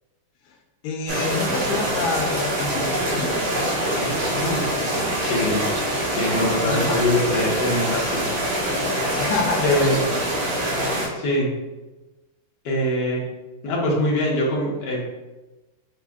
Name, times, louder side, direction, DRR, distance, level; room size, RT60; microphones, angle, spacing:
voice 1, 0.8-3.5 4.8-5.1 6.7-7.0 9.2-10.2, left 4 dB, 85° left, 1 dB, 1.4 m, -27 dB
sound 1, 1.1-11.1, right 1 dB, 75° right, 2.0 m, -24 dB
voice 2, 3.9-4.6 5.2-5.7 6.1-8.2 9.6-10.0 11.1-11.5 12.6-13.3 13.6-15.0, left 1 dB, 60° left, -3 dB, 1.5 m, -23 dB
5.0 x 4.1 x 2.3 m, 1.1 s
omnidirectional pair, 2.2 m